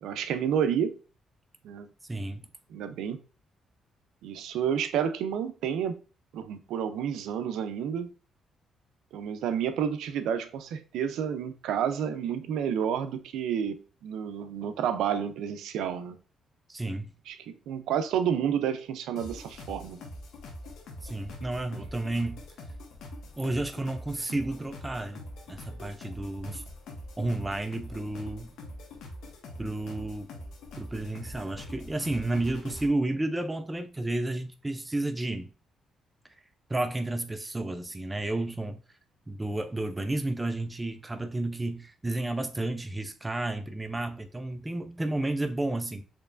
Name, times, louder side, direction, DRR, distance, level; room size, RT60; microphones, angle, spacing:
voice 1, 0.0-1.0 1.6-1.9 2.7-3.2 4.2-6.0 6.3-8.1 9.1-16.2 17.3-17.4 17.7-20.0, right 8 dB, 85° right, 0.5 m, -30 dB
voice 2, 2.0-2.5 16.7-17.1 21.0-22.4 23.4-25.2 25.5-26.6 27.2-28.5 29.6-30.3 30.7-35.5 36.7-38.8 39.3-46.0, right 2 dB, 15° right, 0.4 m, -31 dB
sound 1, 19.2-32.9, left 1 dB, 80° left, 1.1 m, -44 dB
4.4 x 3.2 x 2.5 m
cardioid pair, 90°, 0 cm